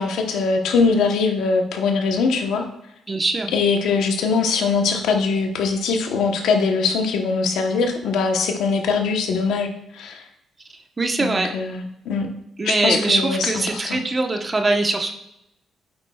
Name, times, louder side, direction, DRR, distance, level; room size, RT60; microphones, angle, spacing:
voice 1, 0.0-2.6 3.5-10.2 11.2-12.3 12.6-14.0, left 4 dB, 80° left, 4 dB, 1.0 m, -22 dB
voice 2, 3.1-3.5 11.0-11.5 12.6-15.1, right 2 dB, 30° right, 4 dB, 1.0 m, -22 dB
8.7 x 7.8 x 2.4 m, 0.84 s
cardioid pair, 90°, 0 cm